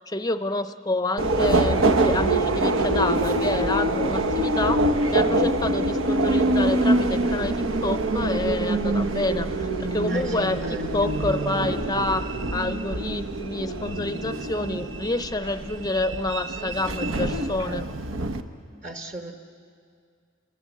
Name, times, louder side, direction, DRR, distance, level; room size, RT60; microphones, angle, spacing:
voice 1, 0.0-4.8 5.1-10.6 10.9-12.2 12.5-17.8, left 2 dB, 20° left, 11 dB, 0.6 m, -28 dB
Subway metro underground, 1.2-18.4, right 2 dB, 80° right, 1.1 m, -25 dB
voice 2, 10.1-11.1 11.4-11.6 18.8-19.3, right 2 dB, 35° right, 4 dB, 1.2 m, -37 dB
28.5 x 21.5 x 7.4 m, 2.3 s
head